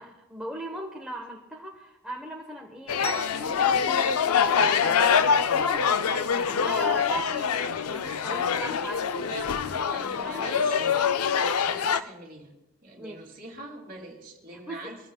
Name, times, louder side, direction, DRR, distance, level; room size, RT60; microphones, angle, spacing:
voice 1, 0.0-3.0 3.3-5.1 5.5-10.6 13.0-13.2 14.5-15.0, right 1 dB, 5° right, -2 dB, 1.1 m, -39 dB
sound 1, 2.9-12.0, left 6 dB, 85° left, 0.5 m, -25 dB
sound 2, 3.0-10.4, left 1 dB, 25° left, 2.0 m, -44 dB
voice 2, 9.1-10.9 11.6-12.6 12.8-15.1, right 2 dB, 40° right, 0 dB, 2.6 m, -43 dB
22.5 x 14.5 x 2.3 m, 0.94 s
head